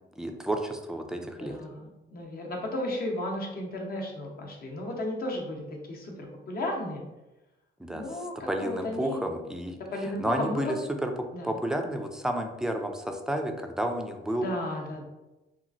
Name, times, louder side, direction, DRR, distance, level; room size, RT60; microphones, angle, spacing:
voice 1, 0.2-1.6 7.8-8.0 8.5-11.1 11.4-14.5, right 1 dB, 5° right, 4 dB, 0.3 m, -31 dB
voice 2, 1.4-7.0 7.9-9.2 9.9-10.7 11.3-11.5 14.4-15.0, left 1 dB, 50° left, 0 dB, 0.7 m, -34 dB
2.9 x 2.4 x 2.5 m, 1.0 s
cardioid pair, 90°, 20 cm